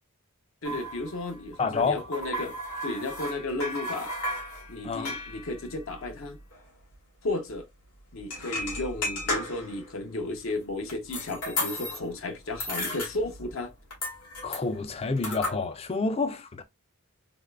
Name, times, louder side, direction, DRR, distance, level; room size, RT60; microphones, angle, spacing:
sound 1, 0.6-6.6 6.9-7.0 7.3-7.5 8.2-9.9 10.4-12.2 12.5-13.6 13.9-15.5, left 1 dB, 85° left, 1.8 m, -35 dB
voice 1, 0.6-2.6 2.8-4.1 4.7-6.4 7.2-7.7 8.1-13.7, left 2 dB, 65° left, 0.7 m, -33 dB
voice 2, 1.6-2.0 4.8-5.1 14.4-16.6, left 4 dB, 25° left, 0.4 m, -28 dB
3.5 x 3.2 x 2.2 m
head